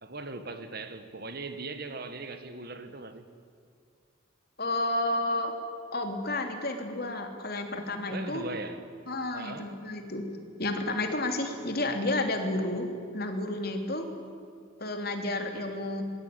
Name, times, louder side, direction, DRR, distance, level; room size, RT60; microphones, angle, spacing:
voice 1, 0.0-3.3 8.1-8.8 9.3-9.7, right 3 dB, 50° right, 1.9 m, -39 dB
voice 2, 4.6-5.5 5.9-8.4 9.1-10.2 10.6-14.0 14.8-16.0, left 2 dB, 50° left, 3.3 m, -31 dB
26.0 x 21.0 x 9.6 m
head